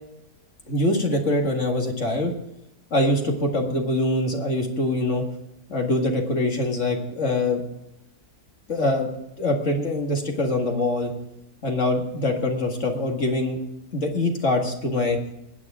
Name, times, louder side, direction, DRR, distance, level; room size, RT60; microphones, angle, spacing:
voice 1, 0.7-2.3 2.9-5.2 5.7-7.6 8.7-9.1 9.4-11.1 11.6-13.6 13.9-15.2, left 1 dB, 50° left, 2 dB, 2.2 m, -24 dB
20.0 x 9.3 x 3.7 m, 0.86 s
omnidirectional pair, 1.6 m